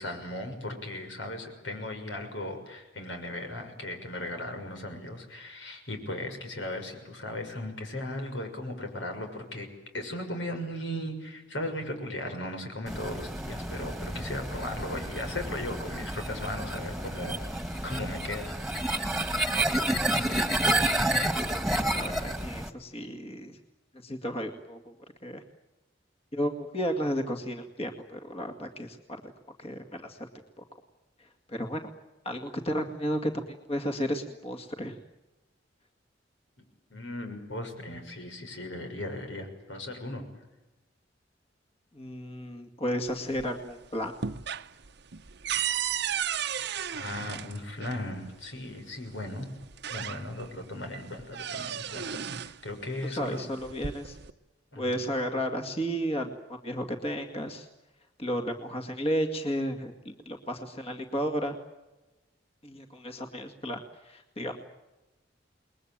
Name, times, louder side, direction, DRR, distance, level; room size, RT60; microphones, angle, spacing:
voice 1, 0.0-9.7 9.9-18.5 20.2-20.3 36.9-40.2 46.5-49.5 49.9-53.5 54.7-55.0, left 1 dB, 90° left, 5 dB, 6.4 m, -37 dB
sound 1, 12.9-22.7, right 1 dB, ahead, 1.9 m, -30 dB
voice 2, 21.7-23.6 24.0-24.8 25.2-25.4 26.3-29.2 29.6-30.3 30.6-30.7 31.5-31.9 32.3-33.3 33.7-35.0 41.9-44.1 53.0-54.2 54.8-57.7 58.2-61.6 62.6-64.7, equal, 35° left, 5 dB, 2.2 m, -33 dB
sound 2, 43.1-43.7 44.0-48.0 49.1-49.2 49.6-50.6 50.9-52.6 53.5-54.3, right 8 dB, 65° right, 0.9 m, -34 dB
29.0 x 21.5 x 9.0 m, 1.0 s
head